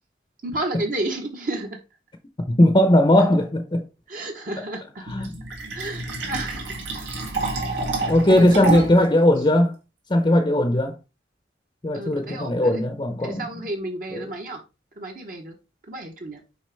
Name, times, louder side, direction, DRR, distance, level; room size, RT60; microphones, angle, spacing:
voice 1, 0.4-1.8 4.1-5.3 5.7-7.2 7.6-8.9 11.9-12.8 13.2-14.6 15.0-15.6 15.9-16.4, right 2 dB, 50° right, 1.0 m, -32 dB
voice 2, 2.5-3.8 5.1-5.3 8.1-9.7 10.1-11.0 11.8-13.5 14.1-14.2, left 1 dB, 25° left, 0.6 m, -18 dB
Fill (with liquid), 5.1-9.1, right 3 dB, 90° right, 2.1 m, -29 dB
6.3 x 4.7 x 3.4 m
head